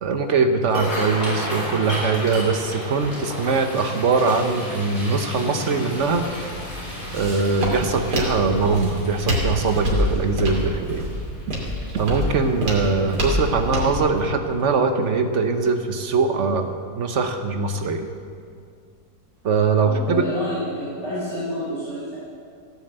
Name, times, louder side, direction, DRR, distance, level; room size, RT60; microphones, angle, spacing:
voice 1, 0.0-6.3 7.1-11.0 11.9-18.1 19.4-20.3, right 4 dB, 55° right, 7 dB, 1.1 m, -22 dB
sound 1, 0.6-13.7 14.2-14.4 14.8-15.2 15.6-15.8 17.0-17.2 17.5-17.7 18.1-18.2, left 1 dB, 70° left, 5.2 m, -34 dB
Walk footsteps, 5.9-14.0, left 1 dB, 90° right, 3.4 m, -27 dB
voice 2, 19.8-22.2, equal, 45° left, -10 dB, 4.3 m, -29 dB
16.5 x 7.0 x 7.9 m, 2.3 s
omnidirectional pair, 1.7 m